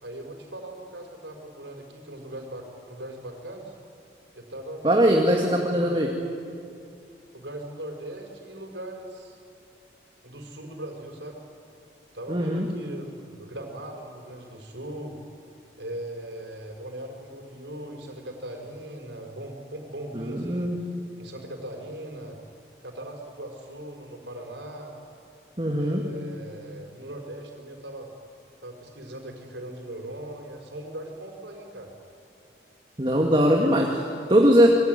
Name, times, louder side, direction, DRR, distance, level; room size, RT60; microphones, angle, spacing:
voice 1, 0.0-3.7 4.4-6.0 7.3-9.4 10.2-11.4 12.1-15.2 15.8-20.7 21.2-22.4 22.8-25.0 25.8-28.1 28.6-31.9, right 1 dB, 90° right, 3 dB, 5.5 m, -39 dB
voice 2, 4.8-6.1 12.3-12.7 20.1-20.8 25.6-26.0 33.0-34.7, equal, 30° right, 1 dB, 2.0 m, -21 dB
27.5 x 22.0 x 9.6 m, 2.6 s
head